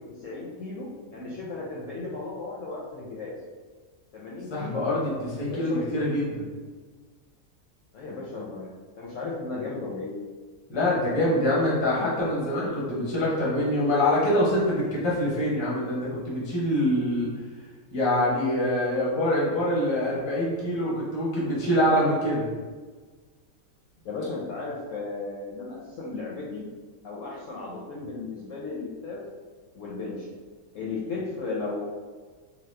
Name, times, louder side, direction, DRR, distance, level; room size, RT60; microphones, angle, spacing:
voice 1, 0.2-3.3 4.1-4.9 5.4-5.9 7.9-10.2 24.0-26.6 27.0-29.2 29.7-30.3 30.7-31.8, left 3 dB, 70° left, -5 dB, 0.8 m, -35 dB
voice 2, 4.5-6.4 10.7-17.3 17.9-22.5, left 1 dB, 25° left, -6 dB, 0.6 m, -25 dB
2.9 x 2.2 x 3.2 m, 1.4 s
omnidirectional pair, 1.6 m